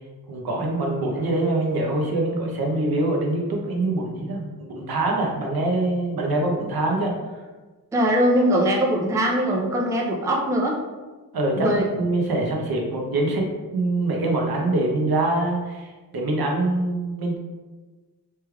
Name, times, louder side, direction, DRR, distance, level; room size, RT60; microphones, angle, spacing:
voice 1, 0.3-7.1 11.3-11.7 11.9-13.4 13.7-15.9 16.1-17.4, right 2 dB, 75° right, 0 dB, 0.7 m, -24 dB
voice 2, 7.9-10.8 11.6-11.9, equal, 10° right, -1 dB, 0.3 m, -21 dB
3.2 x 3.1 x 2.2 m, 1.3 s
wide cardioid pair, 125°, 37 cm